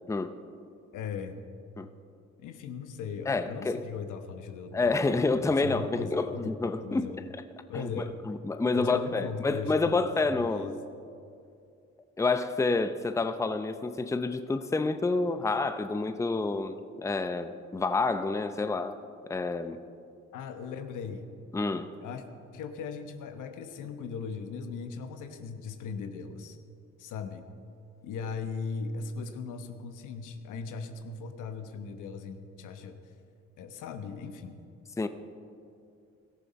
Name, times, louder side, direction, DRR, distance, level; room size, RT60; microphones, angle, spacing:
voice 1, 0.9-1.5 2.4-7.2 7.7-8.1 8.7-10.8 20.3-21.3 22.0-22.2 22.5-26.6 27.0-27.5 28.0-33.0 33.6-34.6, left 5 dB, 90° left, 8 dB, 1.1 m, -38 dB
voice 2, 3.3-3.8 4.7-7.1 7.7-10.8 12.2-19.0 19.3-19.8 21.5-21.9 35.0-35.1, left 3 dB, 10° left, 10 dB, 0.6 m, -28 dB
17.5 x 13.5 x 4.2 m, 2.5 s
cardioid pair, 90°, 30 cm